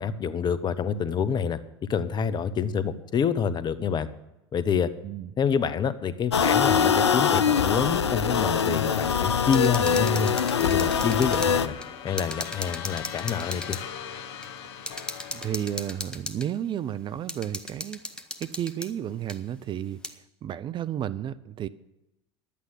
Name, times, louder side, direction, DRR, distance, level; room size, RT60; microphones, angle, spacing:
voice 1, 0.0-1.6 1.9-4.1 4.5-4.9 5.4-10.3 10.6-11.7 12.0-13.8, left 7 dB, 30° left, 13 dB, 1.0 m, -27 dB
sound 1, 6.3-11.7, left 7 dB, 85° left, 0.6 m, -23 dB
sound 2, 9.4-11.5 11.8-11.9 12.2-13.8 14.4-14.5 14.9-16.5 17.3-18.9 19.3-19.4 20.0-20.1, left 1 dB, 5° left, 1.2 m, -37 dB
sound 3, 9.9-16.2, left 8 dB, 65° left, 1.1 m, -39 dB
voice 2, 15.3-18.0 18.4-21.7, right 10 dB, 35° right, 16 dB, 0.6 m, -32 dB
11.5 x 8.6 x 9.2 m, 0.93 s
hypercardioid pair, 80°, 14 cm